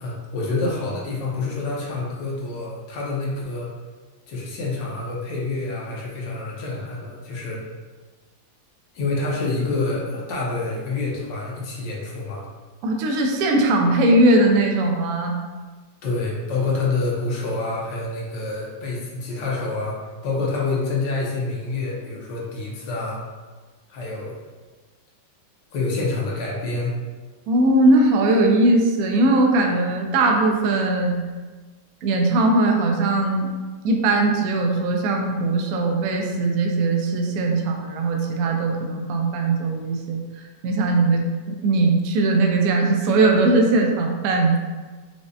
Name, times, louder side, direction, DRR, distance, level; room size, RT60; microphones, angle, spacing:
voice 1, 0.0-3.7 4.3-7.6 8.9-12.4 16.0-23.2 23.9-24.3 25.7-27.0, left 3 dB, 70° left, -4 dB, 1.3 m, -27 dB
voice 2, 12.8-15.3 27.5-31.2 32.0-33.5 33.8-40.2 40.6-44.6, right 2 dB, 85° right, 1 dB, 0.8 m, -19 dB
4.9 x 2.1 x 2.6 m, 1.3 s
omnidirectional pair, 2.1 m